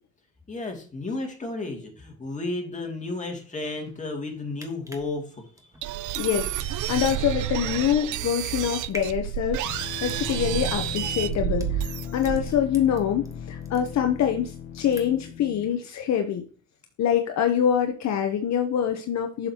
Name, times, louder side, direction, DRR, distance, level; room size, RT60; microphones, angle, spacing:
voice 1, 0.5-5.7 12.4-12.5, left 2 dB, 25° left, 0 dB, 2.4 m, -33 dB
sound 1, 4.5-13.3 13.6-14.4 14.7-15.4 15.7-15.8, right 1 dB, 10° right, 1.4 m, -46 dB
sound 2, 5.8-12.6, right 13 dB, 75° right, 0.5 m, -30 dB
voice 2, 6.1-16.4 17.0-19.5, left 9 dB, 65° left, 5 dB, 0.8 m, -25 dB
sound 3, 9.6-15.7, left 8 dB, 85° left, 1.0 m, -37 dB
7.4 x 6.5 x 2.9 m, 0.41 s
cardioid pair, 90°, 30 cm